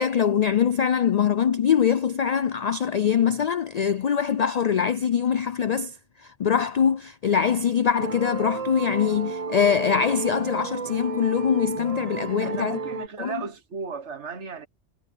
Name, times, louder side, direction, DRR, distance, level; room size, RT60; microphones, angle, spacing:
voice 1, 0.0-5.9 6.2-12.8 13.2-13.4, left 7 dB, 70° left, 0.3 m, -23 dB
sound 1, 8.0-13.1, right 5 dB, 40° right, 0.6 m, -32 dB
voice 2, 12.4-14.7, right 5 dB, 70° right, 1.6 m, -35 dB
omnidirectional pair, 1.2 m